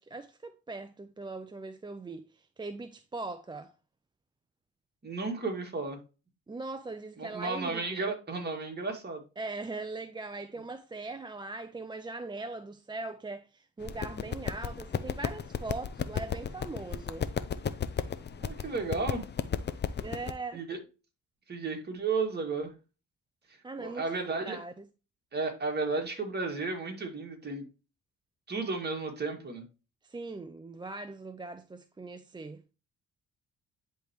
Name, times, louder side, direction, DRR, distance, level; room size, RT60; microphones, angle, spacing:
voice 1, 0.0-3.7 6.5-8.0 9.4-17.3 20.0-20.6 23.6-24.8 30.0-32.6, right 3 dB, 15° right, 0.5 m, -40 dB
voice 2, 5.0-6.0 7.2-9.2 18.4-19.2 20.5-20.8 21.5-22.7 23.5-24.6 25.3-27.7 28.5-29.7, right 3 dB, 35° right, 2.1 m, -33 dB
sound 1, 13.8-20.3, left 7 dB, 35° left, 0.6 m, -34 dB
10.5 x 3.5 x 3.0 m
cardioid pair, 90°, 30 cm